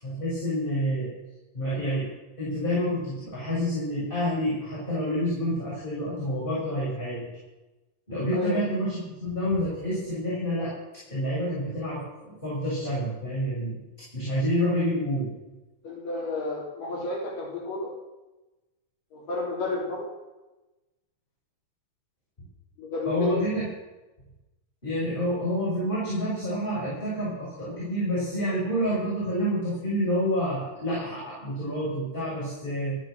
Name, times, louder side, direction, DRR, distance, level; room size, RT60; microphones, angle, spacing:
voice 1, 0.0-1.1 1.5-2.1 2.4-7.3 8.1-10.7 11.1-13.7 14.1-15.3 23.0-23.6 24.8-33.0, equal, 10° left, -8 dB, 7.3 m, -28 dB
voice 2, 15.8-17.9 19.1-20.0 22.8-23.5, left 2 dB, 55° left, -5 dB, 4.8 m, -31 dB
16.5 x 13.0 x 6.7 m, 1.1 s
omnidirectional pair, 4.6 m